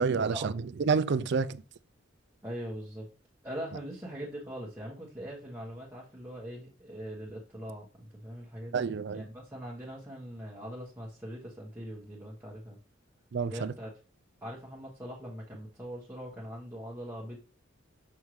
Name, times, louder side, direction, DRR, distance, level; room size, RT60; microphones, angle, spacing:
voice 1, 0.0-1.6 8.7-9.2 13.3-13.7, right 5 dB, 60° right, 0.4 m, -29 dB
voice 2, 2.4-3.1 3.4-12.8 13.4-13.9 14.4-17.4, equal, 10° right, 1.2 m, -42 dB
6.1 x 5.5 x 3.1 m
head